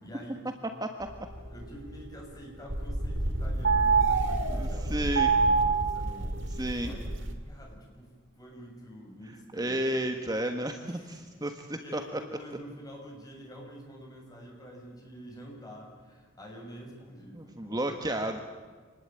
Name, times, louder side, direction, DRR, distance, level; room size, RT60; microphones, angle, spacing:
voice 1, 0.0-0.7 1.5-6.5 6.8-7.1 7.5-10.1 10.8-18.4, equal, 20° left, 0 dB, 7.3 m, -48 dB
sound 1, 1.0-2.3 2.6-7.3, right 4 dB, 75° right, 2.9 m, -27 dB
voice 2, 4.5-5.3 6.6-6.9 9.5-12.0 17.3-18.4, right 1 dB, 20° right, 5 dB, 1.4 m, -32 dB
28.0 x 20.0 x 9.0 m, 1.5 s
head